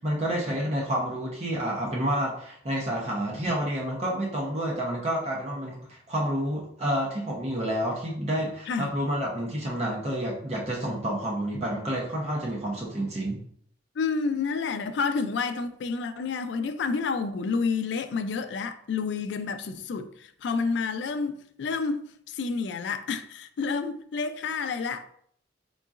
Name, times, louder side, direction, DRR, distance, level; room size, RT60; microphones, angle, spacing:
voice 1, 0.0-13.4, right 1 dB, 35° right, 0.7 m, -29 dB
voice 2, 14.0-25.1, left 4 dB, 65° left, 0.3 m, -29 dB
3.9 x 3.7 x 2.4 m
head